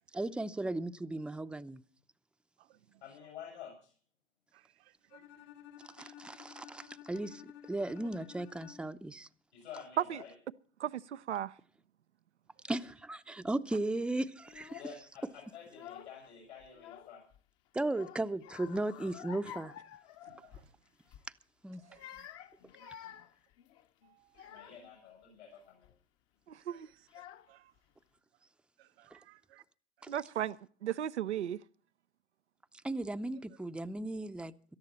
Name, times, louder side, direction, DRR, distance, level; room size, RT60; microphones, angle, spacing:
voice 1, 0.1-1.8 6.0-9.3 12.7-14.8 17.7-19.7 21.6-21.8 30.0-30.1 32.8-34.5, right 2 dB, 5° right, 0.6 m, -36 dB
voice 2, 3.0-3.9 9.5-10.3 14.8-17.2 24.4-25.9, left 7 dB, 80° left, 7.4 m, -50 dB
voice 3, 4.5-5.2 6.0-6.1 20.3-20.7 21.9-22.3 22.8-23.1 24.0-24.5 26.7-27.7 28.8-29.6 30.0-30.1, right 15 dB, 65° right, 1.0 m, -63 dB
Bowed string instrument, 5.1-9.1, left 10 dB, 60° left, 2.8 m, -54 dB
voice 4, 10.8-11.5 26.5-26.9 30.1-31.6, right 10 dB, 90° right, 0.6 m, -36 dB
Child speech kid speaking / Crying sobbing, 14.4-15.0 15.6-16.3 16.6-17.4 17.9-20.7 21.1-21.3 21.8-25.0 25.6-26.0 26.7-26.8 27.1-27.8, left 11 dB, 45° left, 1.1 m, -51 dB
18.0 x 13.5 x 4.2 m
hypercardioid pair, 85°, 33 cm